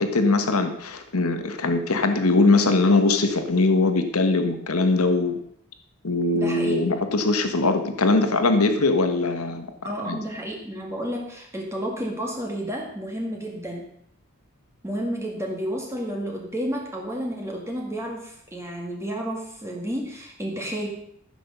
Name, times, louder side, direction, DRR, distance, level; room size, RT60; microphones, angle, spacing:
voice 1, 0.0-5.4 6.0-9.7 10.0-10.2, left 3 dB, 80° left, 7 dB, 1.3 m, -21 dB
voice 2, 6.3-6.9 9.8-13.9 14.8-20.9, equal, 10° right, 0 dB, 1.7 m, -31 dB
14.5 x 6.2 x 6.7 m, 0.70 s
head